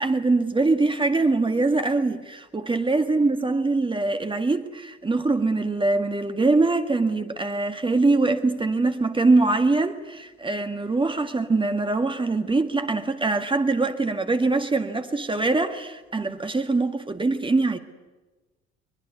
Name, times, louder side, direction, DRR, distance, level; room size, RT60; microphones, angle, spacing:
voice 1, 0.0-17.8, right 3 dB, 15° right, 1.9 m, -23 dB
23.0 x 22.5 x 9.5 m
figure-of-eight pair, 55°, 32 cm